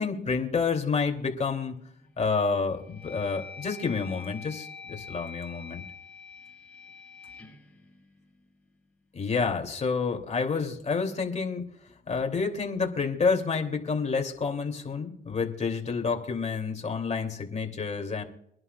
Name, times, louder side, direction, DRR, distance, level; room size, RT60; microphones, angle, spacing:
voice 1, 0.0-1.8 2.2-5.8 9.1-11.6 12.1-18.2, left 5 dB, 35° left, 3 dB, 2.7 m, -29 dB
sound 1, 1.7-2.1 2.6-8.8, left 5 dB, 5° left, 5.7 m, -46 dB
25.0 x 11.0 x 2.3 m, 0.75 s
cardioid pair, 90°, 20 cm